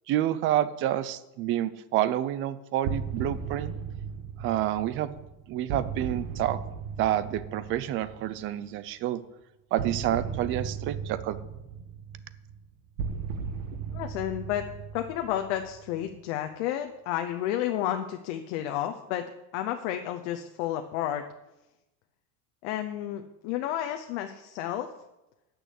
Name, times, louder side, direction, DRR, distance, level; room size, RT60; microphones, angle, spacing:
voice 1, 0.1-3.7 4.4-5.1 5.5-6.6 7.0-9.2 9.7-11.4, right 12 dB, 35° right, 15 dB, 0.5 m, -28 dB
sound 1, 2.8-8.6 9.8-16.0, right 6 dB, 60° right, 1.4 m, -36 dB
voice 2, 13.9-14.7 14.9-19.2 19.5-21.2 22.6-24.9, left 11 dB, 80° left, 6 dB, 0.9 m, -31 dB
9.3 x 6.4 x 8.2 m, 0.95 s
cardioid pair, 175°, 35 cm